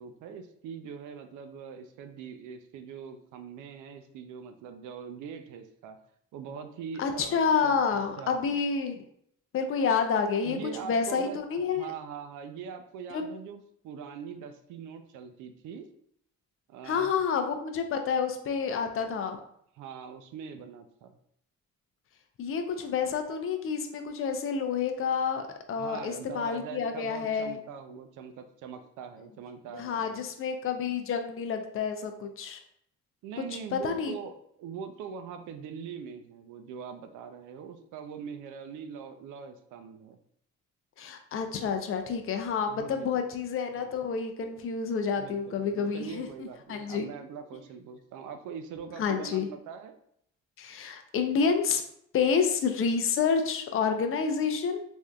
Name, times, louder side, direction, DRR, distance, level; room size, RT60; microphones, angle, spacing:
voice 1, 0.0-6.0 6.3-8.5 10.4-11.4 11.8-15.9 16.7-17.1 19.8-21.1 25.8-30.2 33.2-34.3 34.6-40.2 42.7-43.2 43.8-43.9 45.2-49.9, right 7 dB, 85° right, 7 dB, 0.5 m, -42 dB
voice 2, 7.0-9.0 9.5-10.6 10.8-11.9 13.1-13.2 16.8-19.4 22.4-27.6 29.7-32.6 33.7-34.1 41.0-47.1 49.0-49.5 50.6-51.8 52.1-54.8, left 6 dB, 45° left, 6 dB, 0.5 m, -29 dB
3.4 x 2.6 x 2.3 m, 0.69 s
cardioid pair, 90°, 30 cm